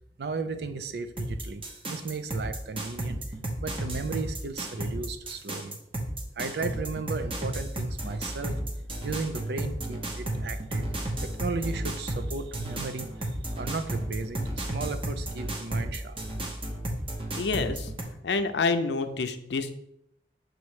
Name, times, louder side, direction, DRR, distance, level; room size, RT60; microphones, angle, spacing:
voice 1, 0.2-3.2 3.6-5.8 6.4-8.6 9.0-10.9 11.2-16.2, right 4 dB, 65° right, 10 dB, 0.5 m, -35 dB
sound 1, 1.2-18.0, right 1 dB, 30° right, 0.9 m, -33 dB
voice 2, 17.3-17.9 18.2-19.7, left 4 dB, 80° left, 9 dB, 0.5 m, -28 dB
6.3 x 3.1 x 4.8 m, 0.79 s
head